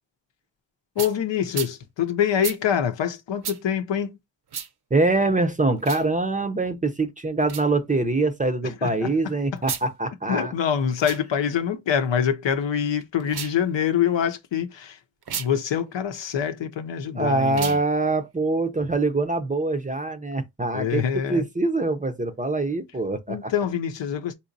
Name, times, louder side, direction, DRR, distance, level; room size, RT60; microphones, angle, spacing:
voice 1, 1.0-4.2 8.6-9.6 10.3-15.0 15.4-17.8 20.7-21.4 23.3-24.3, left 8 dB, 75° left, 0.7 m, -25 dB
sound 1, 1.0-1.1 1.5-1.7 2.4-2.6 3.4-3.6 4.5-4.7 5.8-6.1 7.4-7.7 9.6-9.9 10.9-11.2 13.2-13.6 15.2-15.5 17.5-17.8, right 7 dB, 60° right, 0.7 m, -32 dB
voice 2, 4.9-10.5 17.2-21.0 21.3-23.5, right 2 dB, 20° right, 0.6 m, -24 dB
4.0 x 2.8 x 2.6 m
cardioid pair, 70°, 44 cm